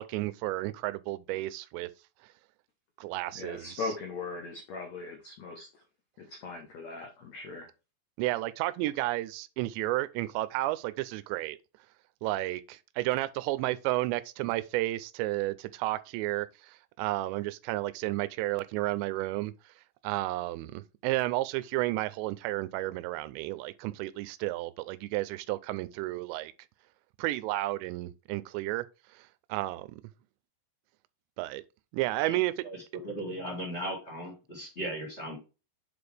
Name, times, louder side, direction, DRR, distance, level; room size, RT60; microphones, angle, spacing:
voice 1, 0.0-1.9 3.0-3.9 8.2-11.6 12.2-19.5 20.0-26.5 27.2-28.9 29.5-30.0 31.4-31.6 31.9-32.5, right 18 dB, 85° right, 2.8 m, -32 dB
voice 2, 3.3-5.8 6.2-7.7, left 3 dB, 85° left, 1.5 m, -39 dB
voice 3, 32.6-35.4, right 1 dB, 20° left, 2.0 m, -37 dB
8.8 x 4.1 x 3.3 m
omnidirectional pair, 5.0 m